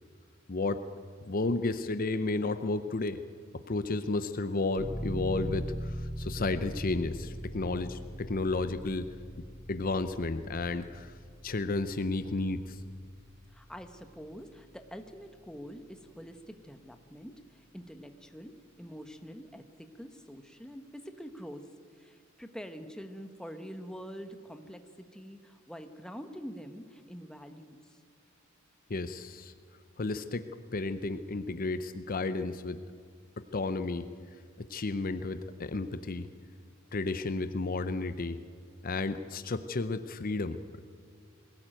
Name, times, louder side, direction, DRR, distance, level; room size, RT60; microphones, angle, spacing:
voice 1, 0.5-0.9 1.2-3.2 3.5-9.1 9.7-11.1 11.4-12.8 28.9-29.5 30.0-30.5 30.7-32.8 33.4-34.1 34.6-36.3 36.9-38.4 38.8-40.8, left 3 dB, 45° left, 11 dB, 0.7 m, -32 dB
sound 1, 4.8-15.3, equal, 25° left, 3.7 m, -41 dB
voice 2, 13.5-28.0, equal, 5° left, 7 dB, 1.2 m, -46 dB
21.5 x 16.5 x 9.0 m, 2.2 s
head